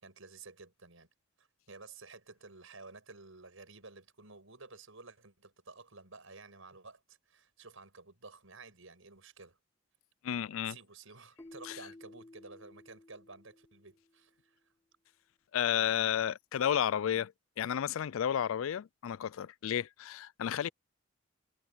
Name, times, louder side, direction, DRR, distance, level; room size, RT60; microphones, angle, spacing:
voice 1, 0.0-1.1 1.4-9.6 10.6-14.7 15.7-15.9, right 3 dB, 70° right, 6.6 m, -53 dB
voice 2, 10.2-10.8 11.6-11.8 15.5-20.7, left 9 dB, 70° left, 0.4 m, -32 dB
Keyboard (musical), 11.4-14.2, left 2 dB, 15° left, 2.2 m, -54 dB
head